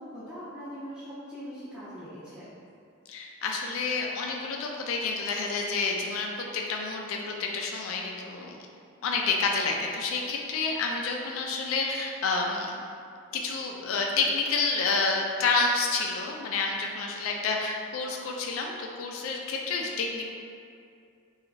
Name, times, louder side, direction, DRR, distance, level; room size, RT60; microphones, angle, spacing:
voice 1, 0.0-2.5, equal, 5° right, -17 dB, 0.6 m, -41 dB
voice 2, 3.1-8.6 9.0-12.8 13.3-20.2, left 4 dB, 75° left, 1 dB, 0.3 m, -29 dB
2.9 x 2.3 x 2.4 m, 2.4 s
head